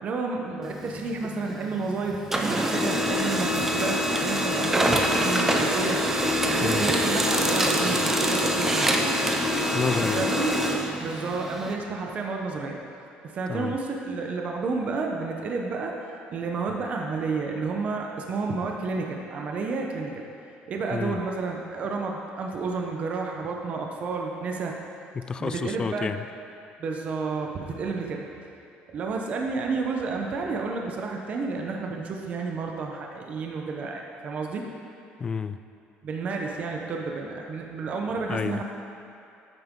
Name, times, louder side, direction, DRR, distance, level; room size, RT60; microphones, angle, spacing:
voice 1, 0.0-6.0 6.4-9.0 10.0-10.5 11.0-12.8 13.2-15.9 16.3-20.2 20.7-24.8 25.4-26.1 26.8-28.3 28.9-34.7 36.0-38.6, right 4 dB, 40° right, 1 dB, 0.9 m, -30 dB
Printer, 0.6-1.9 2.2-11.7, equal, 10° right, 0.7 m, -25 dB
voice 2, 9.7-10.3 13.5-13.8 20.9-21.2 25.1-26.2 35.2-35.6 38.3-38.6, left 5 dB, 20° left, 11 dB, 0.3 m, -29 dB
13.0 x 9.0 x 3.8 m, 2.6 s
cardioid pair, 160°, 4 cm